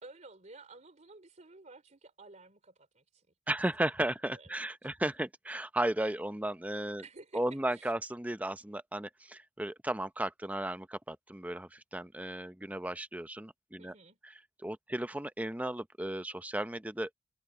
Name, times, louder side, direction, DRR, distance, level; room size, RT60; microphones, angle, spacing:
voice 1, 0.0-3.3 4.3-4.5 7.0-7.4 7.7-7.9 13.8-14.2, right 3 dB, 40° right, 3.1 m, -53 dB
voice 2, 3.5-7.0 7.3-13.9 14.6-17.1, right 1 dB, 10° right, 0.7 m, -35 dB
head